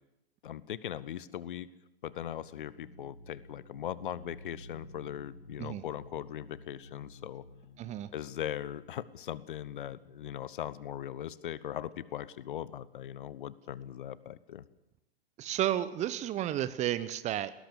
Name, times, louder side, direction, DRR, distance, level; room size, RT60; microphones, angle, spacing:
voice 1, 0.4-1.7 2.0-7.4 8.1-14.6, left 10 dB, 55° left, 19 dB, 1.0 m, -39 dB
sound 1, 2.0-10.7, left 1 dB, 80° left, 6.5 m, -54 dB
voice 2, 7.8-8.1 15.4-17.5, right 12 dB, 25° right, 15 dB, 0.9 m, -32 dB
20.0 x 17.5 x 8.3 m, 0.90 s
figure-of-eight pair, 105°, 30 cm